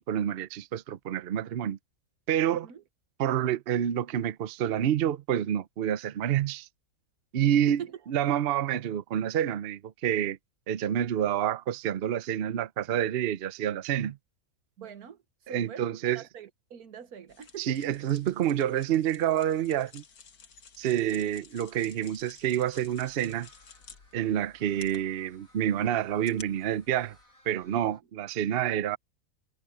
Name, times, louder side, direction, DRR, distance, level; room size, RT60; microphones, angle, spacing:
voice 1, 0.0-1.8 2.3-2.7 3.2-6.7 7.3-7.8 8.1-10.4 10.7-14.2 15.5-16.2 17.6-20.0 20.8-23.5 24.1-27.2 27.5-29.0, right 10 dB, 55° right, 0.7 m, -28 dB
voice 2, 7.7-8.0 14.8-15.2 15.5-17.8 27.7-27.9, right 8 dB, 85° right, 1.7 m, -43 dB
sound 1, 17.3-27.2, left 6 dB, 85° left, 2.0 m, -54 dB
sound 2, 22.9-28.0, equal, 65° left, 6.9 m, -62 dB
omnidirectional pair, 1.5 m